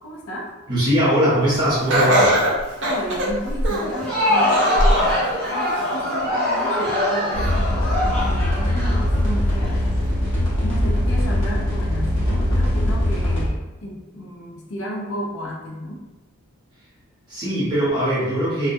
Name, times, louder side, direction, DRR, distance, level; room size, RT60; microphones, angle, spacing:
voice 1, 0.0-0.5 2.8-4.9 5.3-9.9 10.4-16.1, equal, 80° left, -2 dB, 0.6 m, -33 dB
voice 2, 0.7-2.4 17.3-18.7, equal, 20° right, -10 dB, 0.9 m, -20 dB
Laughter, 1.9-4.0 4.5-5.1 5.6-5.7 6.7-6.8, right 1 dB, 55° right, 0.5 m, -20 dB
Crowd, 3.8-9.7, left 1 dB, 5° left, 0.8 m, -23 dB
sound 1, 7.3-13.5, left 1 dB, 55° left, 0.9 m, -21 dB
2.2 x 2.2 x 2.6 m, 1.1 s
head